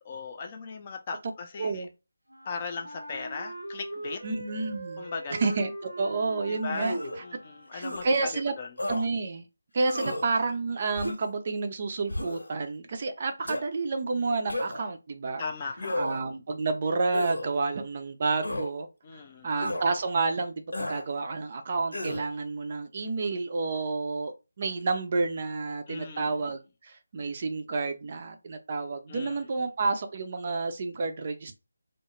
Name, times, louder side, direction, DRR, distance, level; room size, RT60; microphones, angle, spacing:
voice 1, 0.0-1.8 2.4-4.2 5.0-5.3 6.5-8.0 8.6-8.7 15.4-16.0 19.0-19.5 25.9-26.4 29.1-29.4, left 4 dB, 30° left, 0.5 m, -38 dB
voice 2, 1.6-1.9 4.2-7.0 7.7-8.5 8.9-9.4 9.7-15.4 16.0-31.6, right 3 dB, 40° right, 0.4 m, -30 dB
Wind instrument woodwind instrument, 2.3-8.1, right 1 dB, 80° right, 0.6 m, -41 dB
sound 1, 6.7-7.2 7.8-8.1 8.8-9.0 9.8-10.3 11.0-11.3 12.1-12.5 13.5-13.6 14.5-14.9 15.8-16.3 17.1-17.5 18.4-18.7 19.6-19.9 20.7-21.0 21.9-22.3, left 1 dB, 75° left, 0.9 m, -33 dB
2.3 x 2.0 x 2.9 m
figure-of-eight pair, 160°, 0 cm